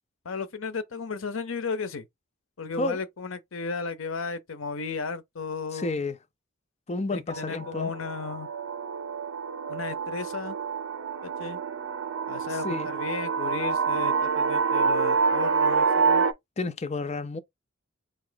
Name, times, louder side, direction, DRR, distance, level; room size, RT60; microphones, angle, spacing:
voice 1, 0.2-2.1 2.6-6.0 7.1-8.5 9.7-10.6 11.2-11.6 12.3-16.3, left 4 dB, 80° left, 0.7 m, -34 dB
voice 2, 5.7-6.2 6.9-7.9 12.5-12.9 16.6-17.4, left 2 dB, 30° left, 0.5 m, -30 dB
sound 1, 7.3-16.3, right 5 dB, 75° right, 0.6 m, -27 dB
3.7 x 2.9 x 3.8 m
head